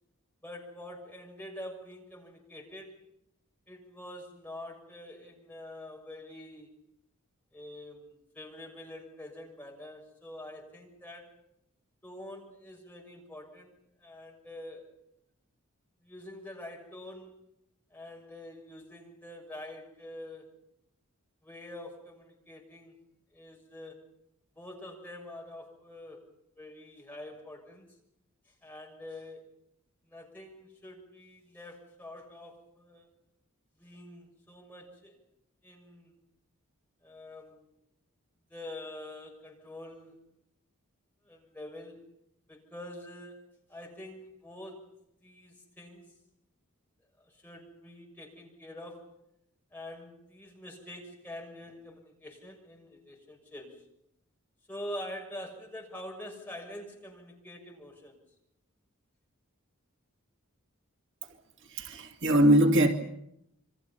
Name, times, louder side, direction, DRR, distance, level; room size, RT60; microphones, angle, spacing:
voice 1, 0.4-3.0 3.7-6.7 7.5-11.3 12.0-13.7 14.0-14.9 16.0-17.4 17.9-20.5 21.4-23.0 23.3-24.0 24.6-26.2 26.6-27.9 28.5-29.5 30.1-33.1 33.8-35.2 35.6-36.1 37.0-37.7 38.5-40.2 41.2-42.0 42.5-43.4 43.7-44.9 45.2-46.1 47.2-49.2 49.7-53.8 54.7-58.2, left 1 dB, 10° left, 6.5 m, -46 dB
voice 2, 61.7-62.9, right 1 dB, 60° right, 2.6 m, -22 dB
28.5 x 25.0 x 5.6 m
head